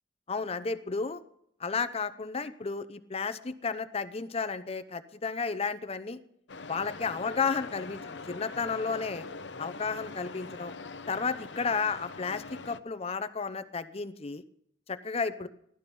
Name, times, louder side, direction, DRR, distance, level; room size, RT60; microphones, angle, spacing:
voice 1, 0.3-1.2 1.6-6.2 6.7-9.3 9.6-10.7 11.1-14.4 14.9-15.5, left 5 dB, 35° left, 12 dB, 0.7 m, -32 dB
sound 1, 6.5-12.8, left 4 dB, 65° left, 0.7 m, -43 dB
16.5 x 12.5 x 5.4 m, 0.73 s
head